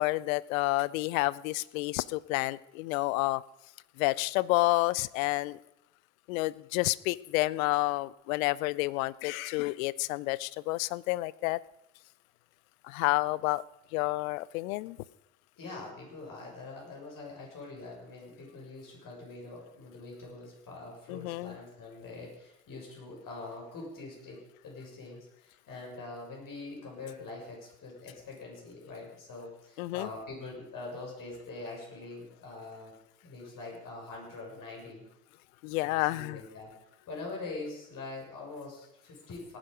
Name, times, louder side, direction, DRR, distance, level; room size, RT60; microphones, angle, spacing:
voice 1, 0.0-3.4 4.0-5.6 6.3-11.6 12.8-13.6 13.9-15.0 21.1-21.6 29.8-30.1 35.6-36.4, left 20 dB, 75° left, 21 dB, 0.6 m, -29 dB
voice 2, 15.6-32.9 33.2-35.0 35.8-36.7 37.1-39.6, left 3 dB, 50° left, -1 dB, 6.9 m, -44 dB
18.5 x 10.0 x 5.2 m, 0.86 s
hypercardioid pair, 55°, 41 cm